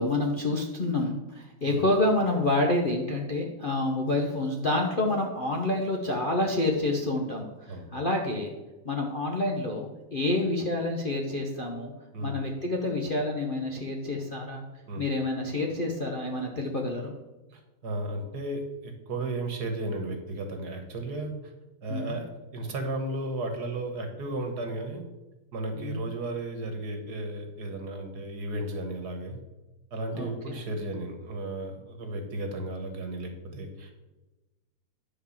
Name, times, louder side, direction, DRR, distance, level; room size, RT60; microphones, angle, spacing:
voice 1, 0.0-8.5 8.8-11.9 12.2-14.6 15.0-17.1 21.9-22.2 25.7-26.0 30.1-30.6, left 2 dB, 35° left, 0 dB, 0.8 m, -28 dB
voice 2, 17.5-21.3 21.8-25.0 25.5-29.4 29.9-34.0, right 2 dB, 55° right, 5 dB, 1.8 m, -34 dB
10.5 x 4.6 x 7.2 m, 1.1 s
omnidirectional pair, 2.2 m